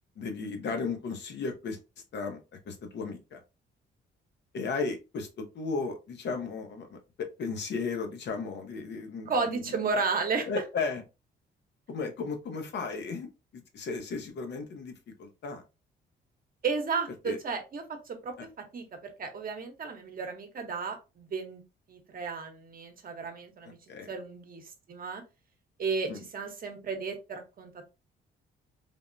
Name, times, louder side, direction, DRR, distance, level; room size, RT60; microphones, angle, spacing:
voice 1, 0.2-1.8 2.1-2.4 2.7-3.4 4.5-9.6 10.4-11.0 11.9-15.6 17.2-17.4 18.4-18.5 23.9-24.1 26.1-26.2, left 4 dB, 60° left, 5 dB, 0.8 m, -35 dB
voice 2, 9.3-10.5 16.6-18.3 18.7-18.9 19.2-21.6 21.9-23.8 24.1-25.2 25.8-27.8, right 4 dB, 45° right, 4 dB, 0.9 m, -33 dB
3.4 x 2.1 x 2.5 m, 0.28 s
cardioid pair, 90°, 20 cm